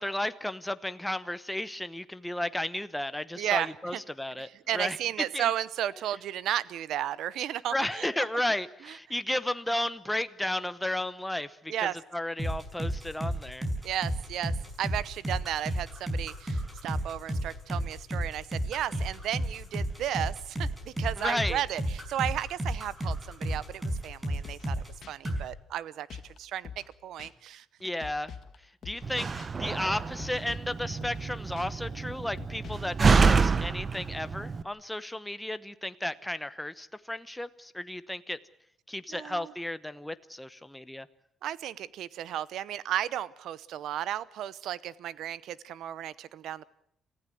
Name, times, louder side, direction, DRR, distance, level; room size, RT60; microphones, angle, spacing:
voice 1, 0.0-5.0 5.3-5.5 7.7-13.7 21.2-21.6 27.8-28.3 28.8-38.4 38.9-41.1, left 1 dB, 5° left, 12 dB, 0.9 m, -33 dB
voice 2, 3.4-4.0 4.4-8.1 8.9-9.0 11.7-12.0 13.8-24.8 25.1-26.7 27.0-27.6 39.1-39.5 41.4-46.7, right 11 dB, 80° right, 19 dB, 0.8 m, -34 dB
sound 1, 12.4-25.0 25.3-25.5, right 1 dB, 15° right, 5.2 m, -32 dB
sound 2, 24.4-24.7 25.0-25.1 26.1-26.4 26.6-26.9 27.2-27.3 28.0-28.6 28.8-29.1 29.4-29.5 30.2-30.7 31.0-31.3 31.6-31.7 32.4-32.9, left 7 dB, 60° left, 1.7 m, -45 dB
Slam, 29.0-34.6, right 4 dB, 35° right, 1.0 m, -27 dB
27.5 x 15.5 x 7.8 m, 0.73 s
cardioid pair, 105°, 0 cm